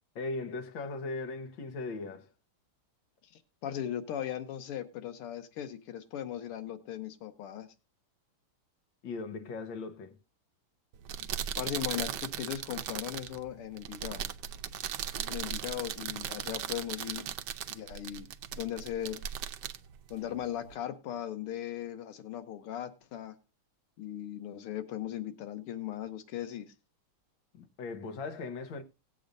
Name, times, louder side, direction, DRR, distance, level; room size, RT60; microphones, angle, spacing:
voice 1, 0.2-2.3 9.0-10.2 27.5-28.8, left 3 dB, 65° left, 1.9 m, -38 dB
voice 2, 3.3-7.7 11.6-14.3 15.2-17.3 17.7-18.3 18.5-19.2 20.1-23.4 24.0-26.7, left 11 dB, 85° left, 1.9 m, -38 dB
sound 1, 10.9-20.8, right 10 dB, 70° right, 1.1 m, -38 dB
18.5 x 8.5 x 2.6 m
omnidirectional pair, 2.4 m